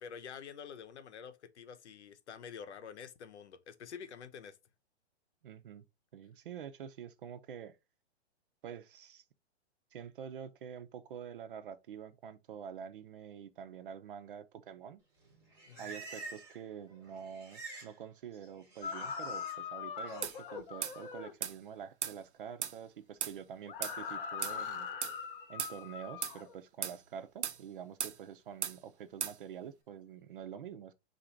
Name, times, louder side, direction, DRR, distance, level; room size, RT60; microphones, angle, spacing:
voice 1, 0.0-4.6 15.7-15.9, left 7 dB, 85° left, 0.9 m, -48 dB
voice 2, 5.4-5.8 6.1-7.8 8.6-9.2 9.9-15.0 15.8-24.9 25.5-30.9, right 8 dB, 50° right, 0.6 m, -47 dB
Livestock farm animals working animals, 15.2-16.6 16.9-17.9 18.2-19.5 20.0-20.4, right 3 dB, 10° right, 0.8 m, -49 dB
sound 1, 18.8-21.3 23.6-26.5, left 6 dB, 50° left, 0.8 m, -41 dB
sound 2, 20.2-20.4 20.8-21.0 21.4-21.6 22.0-22.2 22.6-22.8 23.2-23.4 23.8-24.0 24.4-24.6 25.0-25.2 25.6-25.8 26.2-26.4 26.8-27.0 27.4-27.6 28.0-28.2 28.6-28.8 29.2-29.4, right 8 dB, 90° right, 0.8 m, -36 dB
4.2 x 2.6 x 4.3 m
hypercardioid pair, 170°, 33 cm